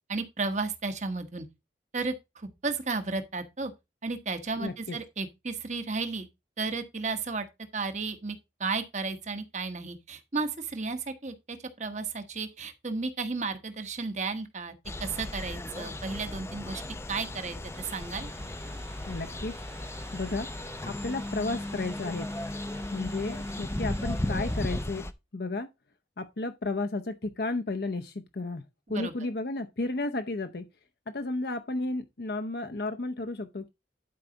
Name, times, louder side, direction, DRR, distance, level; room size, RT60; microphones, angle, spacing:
voice 1, 0.1-1.4 1.9-3.7 4.0-6.3 6.6-7.5 7.7-14.7 15.0-16.8 17.1-18.3 28.9-29.1, right 4 dB, 40° right, 1.2 m, -33 dB
voice 2, 4.6-5.0 19.1-19.5 20.1-20.5 20.9-22.3 22.9-25.0 25.3-25.7 26.2-28.6 28.9-30.7 31.1-33.7, left 2 dB, 55° left, 0.7 m, -33 dB
sound 1, 14.9-25.1, left 1 dB, 15° left, 0.5 m, -35 dB
sound 2, 17.7-24.9, right 7 dB, 90° right, 1.4 m, -53 dB
11.5 x 4.8 x 3.9 m
head